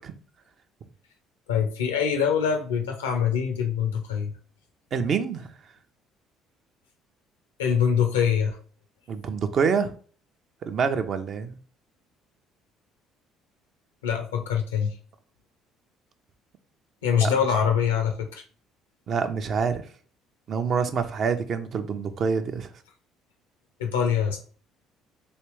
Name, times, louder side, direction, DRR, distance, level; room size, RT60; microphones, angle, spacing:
voice 1, 1.5-4.3 7.6-8.6 14.0-14.9 17.0-18.4 23.8-24.4, left 7 dB, 90° left, 4 dB, 0.6 m, -24 dB
voice 2, 4.9-5.5 9.1-9.9 10.7-11.6 17.2-17.3 19.1-19.8 20.5-22.7, right 6 dB, 50° right, 8 dB, 0.5 m, -26 dB
3.2 x 3.0 x 3.1 m, 0.44 s
hypercardioid pair, 60°, 0 cm